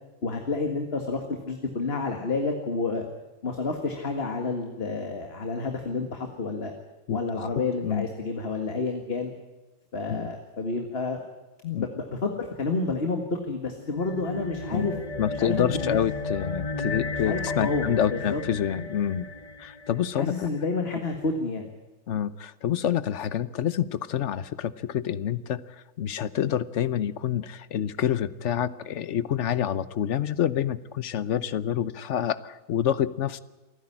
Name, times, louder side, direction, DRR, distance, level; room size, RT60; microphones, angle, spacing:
voice 1, 0.2-3.1 3.4-6.7 7.1-9.3 9.9-11.2 11.8-15.0 15.4-16.0 17.2-18.4 20.1-21.7, left 3 dB, 45° left, 4 dB, 2.0 m, -29 dB
sound 1, 13.8-20.5, left 3 dB, 25° left, 1.1 m, -34 dB
voice 2, 15.2-19.3 19.6-20.5 22.1-25.6 26.0-33.4, left 9 dB, 60° left, 16 dB, 1.1 m, -27 dB
28.0 x 10.5 x 10.0 m, 1.2 s
omnidirectional pair, 1.5 m